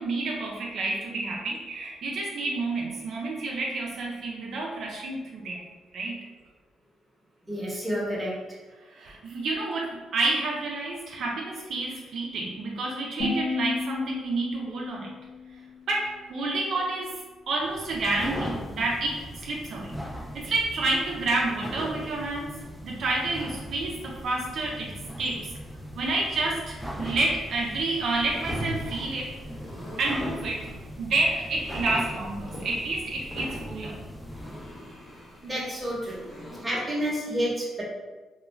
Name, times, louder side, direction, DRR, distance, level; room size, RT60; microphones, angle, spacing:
voice 1, 0.0-5.6 5.9-6.2 8.9-15.1 15.5-15.6 15.9-20.0 20.3-22.6 22.8-25.6 25.9-29.4 30.0-30.7 31.0-34.0, right 2 dB, 65° right, -2 dB, 0.4 m, -29 dB
voice 2, 7.5-8.4 35.4-36.2 36.6-37.8, equal, 10° right, -5 dB, 0.8 m, -29 dB
sound 1, 13.2-16.2, left 3 dB, 85° left, 0.9 m, -33 dB
sound 2, 17.6-34.8, equal, 5° left, 0.3 m, -39 dB
sound 3, 28.1-36.6, left 1 dB, 35° left, 0.7 m, -42 dB
2.2 x 2.1 x 3.1 m, 1.2 s
cardioid pair, 90°, 0 cm